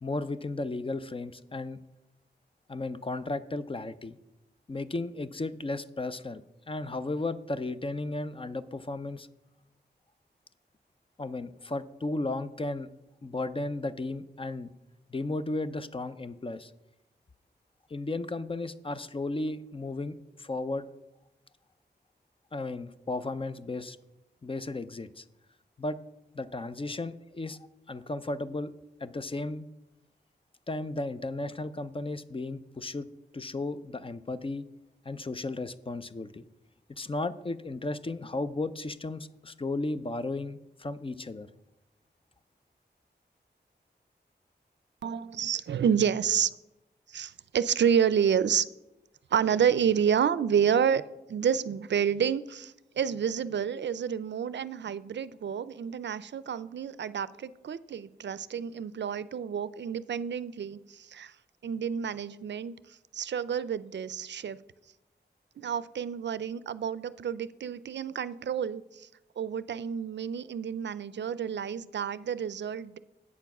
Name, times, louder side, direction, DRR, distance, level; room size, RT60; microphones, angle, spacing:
voice 1, 0.0-1.8 2.7-4.2 4.7-6.4 6.7-9.3 11.2-12.9 13.2-14.7 15.1-16.7 17.9-20.8 22.5-24.0 24.4-25.2 25.8-26.0 26.3-27.6 27.9-28.7 29.0-29.7 30.7-33.1 33.3-34.7 35.1-36.4 37.0-41.5, left 2 dB, 30° left, 14 dB, 0.4 m, -34 dB
voice 2, 45.0-46.5 47.1-48.7 49.3-51.0 51.3-61.3 61.6-62.8 63.1-64.6 65.6-69.1 69.4-73.0, right 8 dB, 75° right, 17 dB, 0.4 m, -29 dB
8.4 x 7.0 x 5.9 m, 0.95 s
wide cardioid pair, 105°, 18 cm